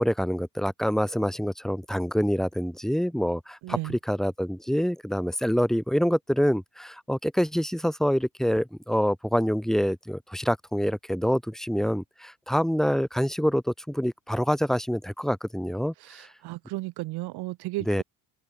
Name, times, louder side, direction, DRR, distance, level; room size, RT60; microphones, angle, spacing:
voice 1, 0.0-16.3 17.9-18.0, equal, ahead, 3.7 m, -26 dB
voice 2, 3.6-4.0 16.0-18.0, right 19 dB, 80° right, 4.8 m, -34 dB
open air
cardioid pair, 95°, 39 cm